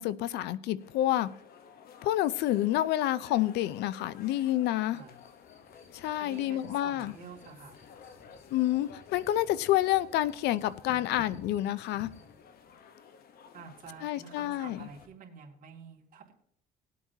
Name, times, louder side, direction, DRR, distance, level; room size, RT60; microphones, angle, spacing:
voice 1, 0.0-1.3 2.0-5.0 5.9-7.1 8.5-12.2 14.0-14.9, left 14 dB, 80° left, 0.5 m, -28 dB
sound 1, 0.8-15.1, left 7 dB, 60° left, 1.1 m, -54 dB
sound 2, 4.9-12.4, left 3 dB, 45° left, 1.4 m, -55 dB
voice 2, 6.2-7.8 13.5-16.3, right 6 dB, 55° right, 2.4 m, -49 dB
20.5 x 8.2 x 2.8 m
cardioid pair, 110°, 17 cm